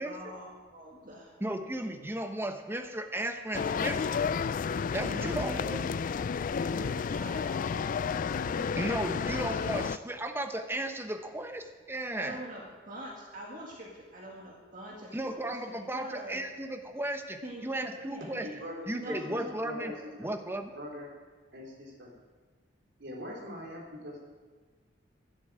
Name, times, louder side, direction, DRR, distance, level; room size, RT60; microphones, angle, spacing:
voice 1, 0.0-1.4 5.0-6.0 6.3-9.5 12.2-16.4 17.4-17.7 18.1-18.5 18.9-19.6, right 1 dB, 45° right, -2 dB, 2.1 m, -44 dB
voice 2, 1.4-4.4 4.9-5.8 8.8-12.4 15.1-18.5 18.9-19.9 20.2-20.7, right 1 dB, 10° right, 6 dB, 1.1 m, -35 dB
sound 1, 3.5-10.0, left 6 dB, 45° left, 0.3 m, -31 dB
voice 3, 18.4-20.3 20.7-21.1 21.5-22.1 23.0-24.2, left 1 dB, 65° right, -2 dB, 3.8 m, -42 dB
11.5 x 10.5 x 7.7 m, 1.4 s
head